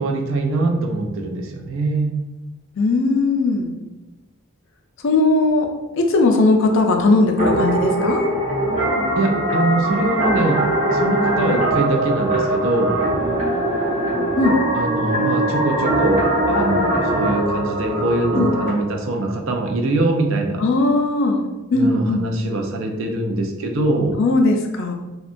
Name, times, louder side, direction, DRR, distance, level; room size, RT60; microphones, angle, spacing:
voice 1, 0.0-2.2 9.1-13.0 14.7-20.6 21.7-24.2, right 2 dB, 65° right, 2 dB, 0.4 m, -22 dB
voice 2, 2.8-3.7 5.0-8.2 14.4-14.6 18.3-18.5 20.6-21.4 21.7-22.3 24.2-24.9, left 2 dB, 60° left, 3 dB, 0.4 m, -18 dB
sound 1, 7.4-18.7, right 1 dB, 35° right, 0.8 m, -21 dB
2.8 x 2.2 x 2.5 m, 1.1 s
head